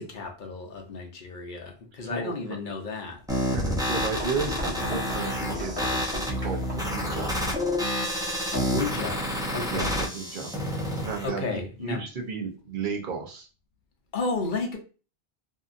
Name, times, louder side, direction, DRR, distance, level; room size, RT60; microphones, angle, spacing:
voice 1, 0.0-3.2 8.5-10.0 11.2-12.0 14.1-14.8, left 3 dB, 55° left, 0.8 m, -33 dB
voice 2, 2.1-2.5 3.5-7.3 9.6-10.5 11.0-13.5, right 5 dB, 55° right, 0.9 m, -34 dB
sound 1, 3.3-7.0, left 1 dB, 25° left, 1.0 m, -35 dB
sound 2, 3.3-11.3, equal, 5° right, 0.5 m, -29 dB
2.8 x 2.6 x 2.4 m
omnidirectional pair, 1.1 m